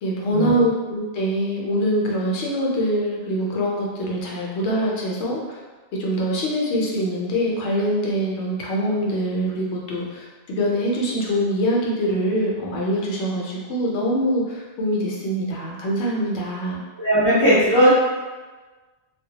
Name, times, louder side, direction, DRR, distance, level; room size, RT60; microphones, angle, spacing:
voice 1, 0.0-5.6 6.0-16.8, equal, 75° left, -3 dB, 0.9 m, -24 dB
voice 2, 17.0-17.9, equal, 30° right, -12 dB, 0.5 m, -17 dB
2.1 x 2.1 x 2.7 m, 1.3 s
omnidirectional pair, 1.2 m